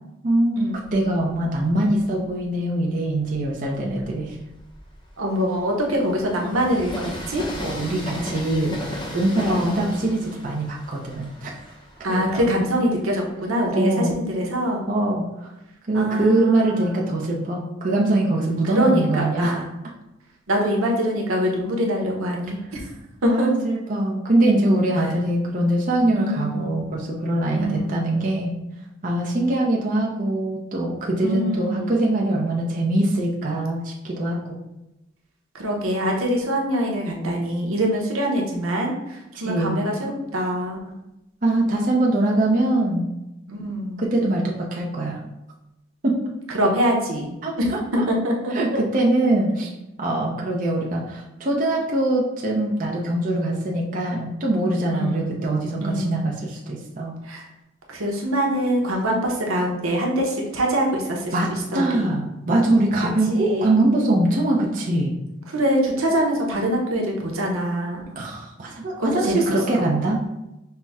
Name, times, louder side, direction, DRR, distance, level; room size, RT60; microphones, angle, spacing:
voice 1, 0.2-4.4 7.6-11.5 12.1-12.5 13.7-14.1 14.9-15.5 15.9-19.5 23.2-28.5 29.0-34.6 39.4-39.8 41.4-43.1 44.0-45.2 46.0-46.2 47.4-47.8 48.5-49.7 50.0-57.1 61.3-61.5 61.7-65.2 68.2-70.2, right 1 dB, 40° right, -2 dB, 0.6 m, -23 dB
Train, 0.8-2.4 3.1-13.7, left 1 dB, 25° left, 0.6 m, -37 dB
voice 2, 5.2-7.4 9.5-9.9 12.0-14.9 15.9-16.9 18.7-19.7 20.5-22.6 23.2-23.5 26.1-26.8 27.5-28.1 31.2-31.9 35.5-40.8 43.5-44.0 46.5-47.7 48.1-48.8 54.9-55.4 55.8-56.3 57.2-57.4 57.9-62.1 63.4-63.8 65.5-68.2 69.0-69.4 69.7-70.0, equal, 90° right, 0 dB, 0.8 m, -24 dB
5.5 x 2.1 x 3.5 m, 0.92 s
head